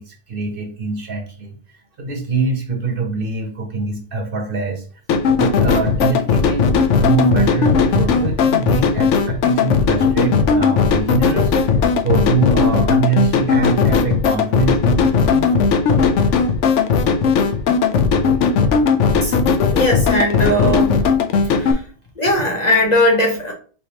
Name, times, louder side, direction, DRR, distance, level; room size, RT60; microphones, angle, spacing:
voice 1, 0.0-1.6 2.0-4.8 5.4-15.5 18.0-18.2, right 4 dB, 50° right, 4 dB, 0.9 m, -23 dB
sound 1, 5.1-21.7, left 5 dB, 75° left, 0.9 m, -16 dB
voice 2, 19.7-21.0 21.5-21.8 22.2-23.5, left 1 dB, 40° left, 0 dB, 0.7 m, -18 dB
4.5 x 3.4 x 2.8 m, 0.40 s
omnidirectional pair, 1.3 m